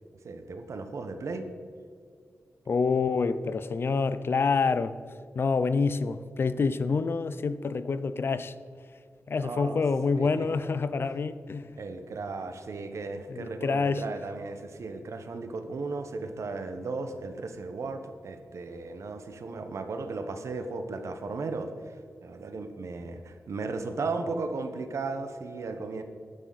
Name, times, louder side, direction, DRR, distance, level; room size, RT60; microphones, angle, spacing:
voice 1, 0.2-1.5 9.4-9.8 10.2-10.5 11.8-21.9 22.2-26.0, right 3 dB, 65° right, 1.0 m, -35 dB
voice 2, 2.7-4.9 5.3-8.5 9.3-11.7 13.3-14.0, left 4 dB, 45° left, 0.4 m, -27 dB
12.0 x 9.9 x 4.0 m
wide cardioid pair, 165°, 5 cm